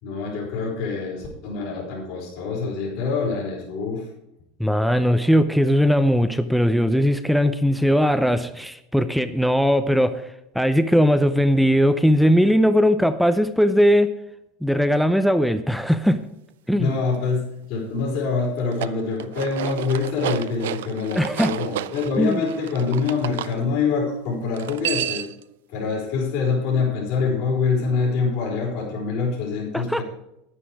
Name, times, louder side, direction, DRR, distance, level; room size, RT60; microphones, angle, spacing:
voice 1, 0.0-4.1 16.8-25.2 25.7-30.0, left 4 dB, 65° left, -2 dB, 4.6 m, -25 dB
voice 2, 4.6-14.1 14.6-16.2 16.7-16.9 21.2-21.5 22.2-22.4 29.7-30.0, equal, ahead, 9 dB, 0.6 m, -19 dB
sound 1, 18.6-23.5 24.5-25.4, right 12 dB, 85° right, 0.5 m, -31 dB
10.0 x 10.0 x 4.8 m, 0.85 s
supercardioid pair, 120°, 0 cm